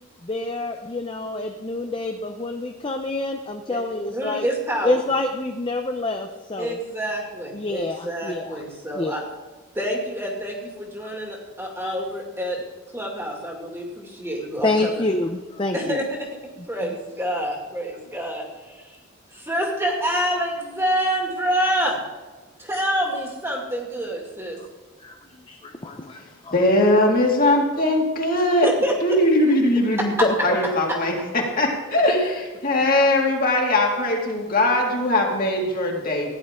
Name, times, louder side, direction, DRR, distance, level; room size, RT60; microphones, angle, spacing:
voice 1, 0.2-4.5 4.8-6.8 7.5-8.6 9.0-9.1 11.8-11.9 14.6-16.0 16.8-16.9 25.0-26.5 30.2-30.6, left 2 dB, 25° left, 5 dB, 0.6 m, -27 dB
voice 2, 4.1-5.0 6.6-9.2 9.7-12.6 12.9-15.1 15.7-16.3 16.7-19.0 19.3-22.0 22.6-24.6 28.6-29.1, equal, 10° right, -1 dB, 2.3 m, -27 dB
voice 3, 26.5-28.7 29.0-30.1 30.4-36.3, left 1 dB, 40° left, 0 dB, 2.2 m, -20 dB
16.0 x 10.5 x 3.7 m, 1.2 s
head